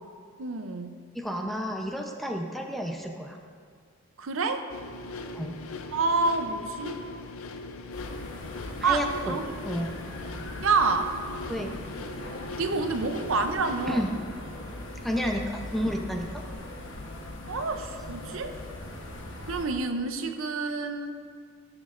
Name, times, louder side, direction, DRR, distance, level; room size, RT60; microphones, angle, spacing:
voice 1, 0.4-0.9 4.2-4.6 5.9-7.0 8.6-9.5 10.6-11.1 12.6-14.1 17.5-18.5 19.4-21.1, right 4 dB, 75° right, 7 dB, 0.6 m, -28 dB
voice 2, 1.1-3.4 5.3-5.6 8.8-9.3 9.6-9.9 11.5-11.7 13.9-14.1 15.0-16.3, equal, ahead, 1 dB, 0.6 m, -31 dB
sound 1, 4.7-13.9, left 2 dB, 90° left, 0.6 m, -40 dB
sound 2, 7.9-19.7, left 1 dB, 65° left, 1.1 m, -40 dB
16.0 x 6.2 x 2.5 m, 2.1 s
head